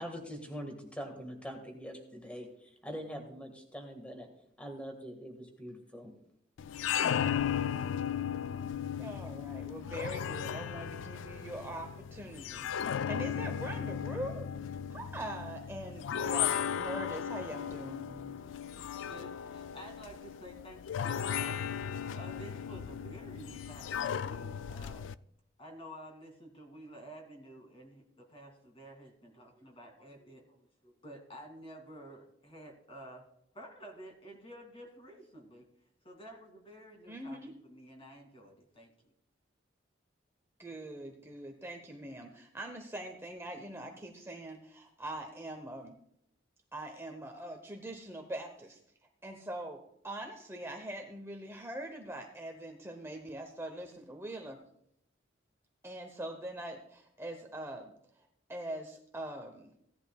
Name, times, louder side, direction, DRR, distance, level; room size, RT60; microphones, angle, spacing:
voice 1, 0.0-4.3 4.6-6.1, equal, 5° left, 3 dB, 1.8 m, -43 dB
sound 1, 6.6-25.2, left 8 dB, 75° left, 0.3 m, -36 dB
voice 2, 9.0-14.5 14.9-18.4 37.1-37.5 40.6-46.0 46.7-48.8 49.2-54.6 55.8-57.9 58.5-59.7, right 1 dB, 15° right, 3 dB, 0.9 m, -43 dB
voice 3, 19.1-25.1 25.6-30.6 30.8-33.2 33.5-35.7 36.0-37.4 37.6-38.9, right 1 dB, 30° left, 2 dB, 2.4 m, -51 dB
16.5 x 11.0 x 2.3 m, 0.74 s
head